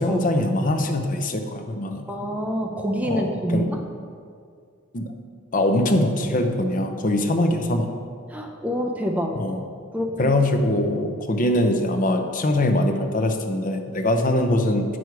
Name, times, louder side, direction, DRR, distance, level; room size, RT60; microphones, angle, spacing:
voice 1, 0.0-2.1 3.1-3.7 4.9-5.1 5.5-7.9 9.4-9.6 10.2-15.0, left 1 dB, 40° left, 5 dB, 0.6 m, -22 dB
voice 2, 2.1-3.8 8.3-9.4 9.9-10.4, equal, 5° right, 2 dB, 0.5 m, -26 dB
9.4 x 6.3 x 4.6 m, 2.2 s
head